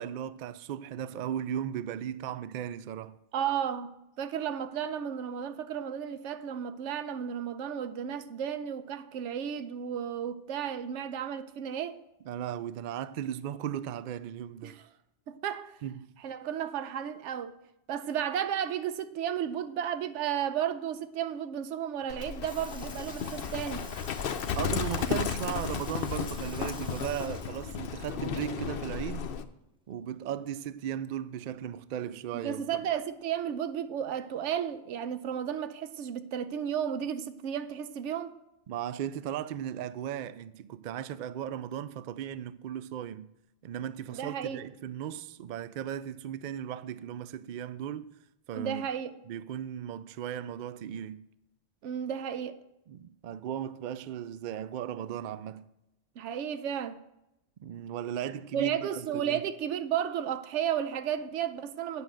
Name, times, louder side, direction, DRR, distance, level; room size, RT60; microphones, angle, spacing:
voice 1, 0.0-3.2 12.3-14.8 15.8-16.1 24.5-29.3 29.9-32.8 38.7-43.3 43.6-48.1 48.5-48.8 49.3-51.3 52.9-55.7 57.6-59.4, right 10 dB, 60° right, 0.5 m, -36 dB
voice 2, 3.3-12.0 14.6-14.8 15.3-15.8 16.2-17.5 17.9-23.9 32.4-38.4 44.1-44.6 48.5-49.1 51.8-52.6 56.2-57.0 58.5-62.0, right 9 dB, 80° right, 0.9 m, -33 dB
Sink (filling or washing) / Liquid, 22.0-22.1 22.4-28.5 28.9-29.0 30.5-30.6 31.6-31.7 32.5-32.7 33.5-33.6, equal, 5° right, 0.6 m, -50 dB
Livestock farm animals working animals, 22.1-29.5, left 7 dB, 60° left, 0.7 m, -34 dB
9.5 x 6.1 x 7.7 m
omnidirectional pair, 1.2 m